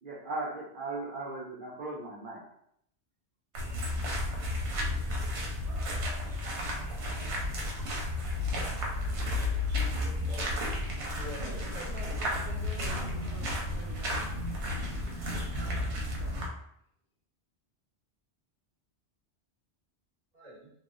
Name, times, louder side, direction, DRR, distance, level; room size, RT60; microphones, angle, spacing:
voice 1, 0.0-2.4, right 2 dB, 55° right, -5 dB, 0.7 m, -37 dB
sound 1, 3.5-16.5, left 1 dB, 85° right, 1.0 m, -32 dB
voice 2, 9.7-10.7 11.1-12.0 12.9-13.1 20.3-20.7, right 1 dB, 35° right, -7 dB, 1.1 m, -47 dB
voice 3, 11.3-15.4 15.7-16.4, left 1 dB, 60° left, -2 dB, 0.7 m, -49 dB
3.1 x 2.0 x 2.5 m, 0.71 s
omnidirectional pair, 1.1 m